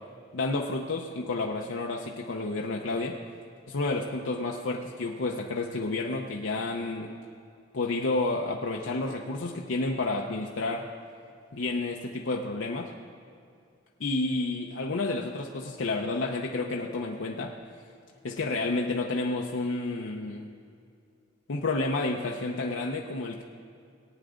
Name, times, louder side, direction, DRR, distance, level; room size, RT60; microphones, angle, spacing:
voice 1, 0.3-3.2 3.7-7.1 7.7-10.9 11.5-12.9 14.0-17.5 18.2-20.5 21.5-23.4, left 2 dB, 85° left, 0 dB, 0.7 m, -30 dB
19.0 x 8.9 x 3.7 m, 2.4 s
head